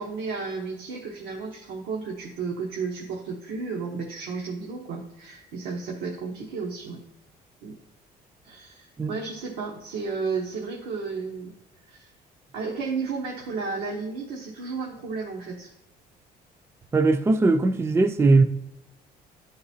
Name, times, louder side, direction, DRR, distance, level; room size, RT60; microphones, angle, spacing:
voice 1, 0.0-7.0 7.6-7.8 8.4-11.5 11.9-12.1 12.5-15.7, right 4 dB, 85° right, 1.0 m, -33 dB
voice 2, 16.9-18.4, right 3 dB, 15° right, 0.4 m, -19 dB
10.5 x 3.9 x 2.7 m
cardioid pair, 110°, 17 cm